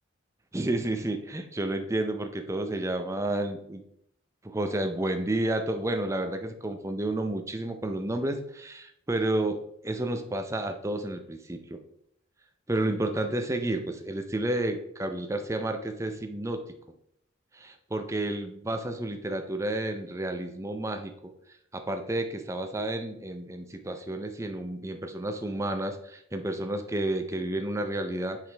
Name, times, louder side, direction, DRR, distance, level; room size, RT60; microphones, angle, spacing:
voice 1, 0.5-3.8 4.4-11.8 12.7-16.6 17.5-21.3 21.7-28.4, right 1 dB, 15° right, 6 dB, 0.5 m, -31 dB
6.0 x 5.0 x 3.3 m, 0.74 s
head